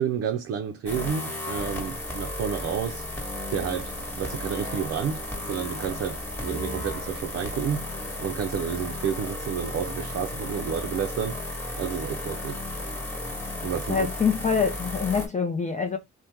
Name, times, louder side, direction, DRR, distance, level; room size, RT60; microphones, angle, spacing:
voice 1, 0.0-3.1 3.5-12.6 13.6-14.1, right 8 dB, 55° right, 0.5 m, -30 dB
sound 1, 0.9-15.3, left 1 dB, 10° left, 1.3 m, -34 dB
voice 2, 13.9-16.0, left 6 dB, 25° left, 0.5 m, -25 dB
2.9 x 2.1 x 3.4 m
cardioid pair, 90°, 30 cm